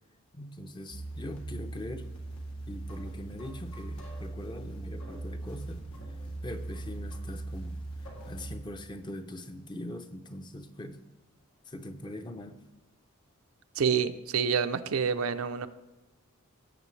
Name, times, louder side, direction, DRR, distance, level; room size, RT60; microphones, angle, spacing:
voice 1, 0.3-2.1 2.7-5.9 6.4-7.8 8.3-11.0 11.7-12.6, left 1 dB, 20° left, 8 dB, 0.5 m, -42 dB
sound 1, 0.9-8.6, right 2 dB, 90° left, 2.1 m, -40 dB
voice 2, 13.8-15.7, right 6 dB, 85° right, 10 dB, 0.6 m, -28 dB
17.0 x 7.6 x 3.2 m, 1.1 s
head